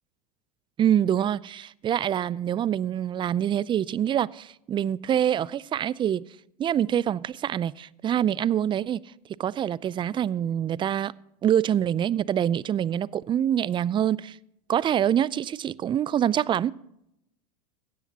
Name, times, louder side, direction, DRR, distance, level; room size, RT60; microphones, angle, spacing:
voice 1, 0.8-6.2 6.6-9.0 9.4-11.1 11.4-14.4 14.7-16.7, right 10 dB, 25° right, 0.4 m, -25 dB
17.0 x 13.0 x 2.9 m
hypercardioid pair, 100°, 21 cm